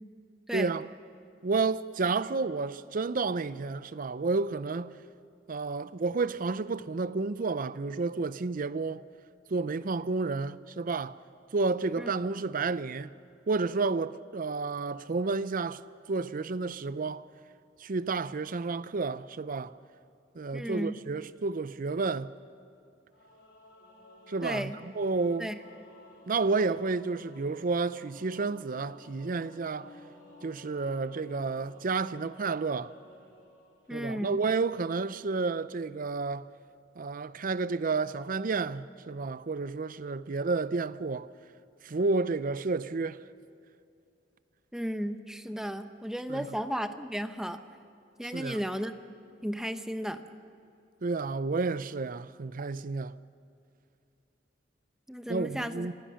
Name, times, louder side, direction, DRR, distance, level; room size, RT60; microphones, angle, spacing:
voice 1, 0.5-0.9 1.4-5.0 5.5-9.0 9.5-11.2 11.5-13.2 13.5-15.8 16.1-17.3 17.8-19.8 20.4-22.3 24.3-25.5 26.3-29.9 30.4-32.9 33.9-36.5 37.0-41.3 41.8-43.2 46.3-46.5 48.3-48.6 51.0-53.2 55.3-55.9, right 4 dB, 45° right, 0.5 m, -31 dB
voice 2, 20.5-21.0 24.4-24.8 25.4-25.6 33.9-34.4 44.7-47.6 48.2-48.9 49.4-50.2 55.1-55.9, equal, 5° right, 0.8 m, -34 dB
Singing / Musical instrument, 23.1-34.4, left 1 dB, 80° left, 3.7 m, -54 dB
26.5 x 15.5 x 6.4 m
head